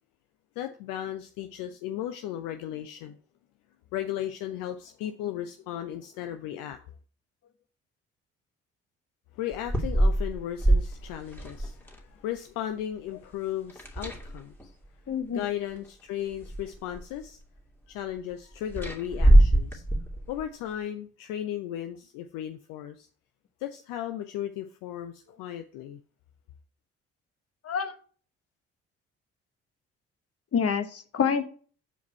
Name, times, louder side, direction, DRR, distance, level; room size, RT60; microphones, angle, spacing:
voice 1, 0.6-3.2 3.9-6.8 9.3-14.7 15.3-17.4 17.9-19.8 20.3-23.1 23.6-26.0, left 11 dB, 65° left, 7 dB, 0.7 m, -35 dB
sound 1, 9.5-12.0 13.7-14.6 15.8-15.9 16.3-17.2 18.7-20.4, right 1 dB, 5° left, 2.2 m, -23 dB
voice 2, 15.1-15.4 27.6-27.9 30.5-31.4, left 6 dB, 45° left, 10 dB, 1.3 m, -27 dB
8.0 x 4.8 x 4.4 m, 0.42 s
hypercardioid pair, 45°, 34 cm